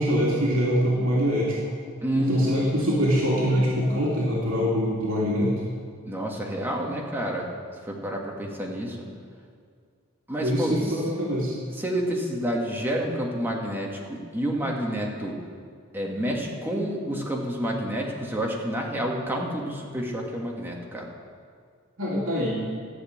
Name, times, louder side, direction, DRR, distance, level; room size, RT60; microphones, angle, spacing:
voice 1, 0.0-1.6 2.1-5.5 10.4-11.5 22.0-22.6, equal, 75° right, -6 dB, 2.8 m, -24 dB
voice 2, 2.0-2.9 6.0-7.5 7.9-9.0 10.3-11.0 11.8-15.4 15.9-21.1, equal, 10° right, -1 dB, 1.7 m, -29 dB
13.5 x 6.6 x 8.7 m, 2.1 s
head